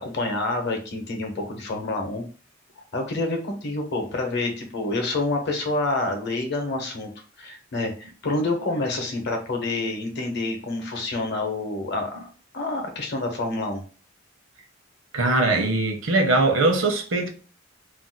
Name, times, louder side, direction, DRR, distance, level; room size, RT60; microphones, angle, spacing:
voice 1, 0.0-2.3 2.8-7.1 7.4-12.3 12.5-13.8, left 2 dB, 60° left, 0.8 m, -28 dB
voice 2, 15.1-17.3, right 2 dB, 75° right, 0.7 m, -21 dB
2.5 x 2.2 x 3.8 m
head